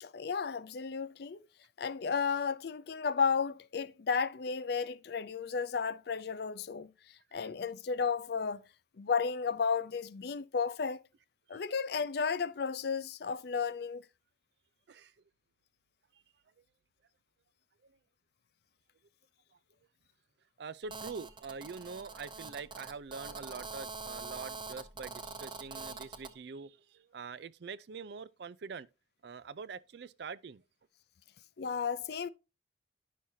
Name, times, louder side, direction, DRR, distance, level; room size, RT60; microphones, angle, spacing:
voice 1, 0.0-1.4 1.8-6.9 7.3-8.6 9.0-11.0 11.5-14.0 31.6-32.3, left 5 dB, 60° left, 0.5 m, -33 dB
voice 2, 20.6-28.9 29.2-30.6, right 5 dB, 60° right, 0.4 m, -44 dB
Telephone, 20.9-26.3, right 4 dB, 25° right, 0.7 m, -44 dB
10.0 x 6.3 x 2.7 m
head